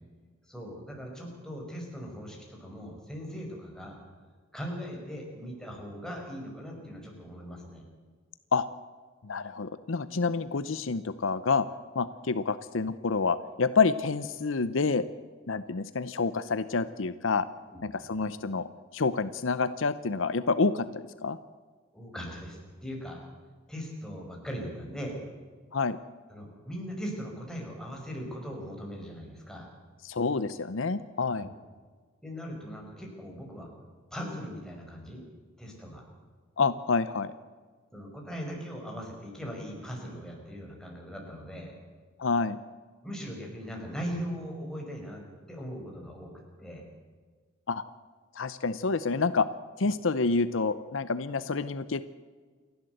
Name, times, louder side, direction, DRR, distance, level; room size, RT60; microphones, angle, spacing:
voice 1, 0.5-4.0 4.5-7.9 17.7-17.9 21.9-23.2 23.7-25.2 26.3-29.7 31.3-31.5 32.2-33.7 34.1-35.2 35.6-36.0 37.9-41.8 43.0-46.3 46.6-46.8, equal, 5° left, 0 dB, 5.4 m, -39 dB
voice 2, 9.2-11.7 11.9-15.0 15.5-17.5 17.8-18.7 18.9-21.4 25.7-26.0 30.0-31.5 36.6-37.3 42.2-42.6 47.7-47.8 48.4-49.5 49.8-52.1, left 4 dB, 65° left, 14 dB, 0.7 m, -28 dB
28.5 x 12.0 x 7.9 m, 1.5 s
head